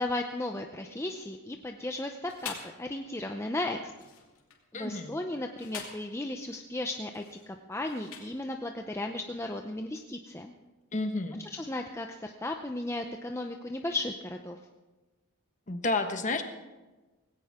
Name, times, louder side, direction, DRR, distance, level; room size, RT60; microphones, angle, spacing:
voice 1, 0.0-3.9 4.7-10.5 11.4-14.6, left 2 dB, 10° left, 4 dB, 0.6 m, -35 dB
sound 1, 2.0-2.8 3.9-4.6 5.4-6.2 7.1-8.5, left 7 dB, 70° left, 2.7 m, -45 dB
voice 2, 4.7-5.1 10.9-11.4 15.7-16.4, left 2 dB, 35° left, 6 dB, 1.2 m, -30 dB
18.0 x 17.0 x 3.6 m, 1.2 s
head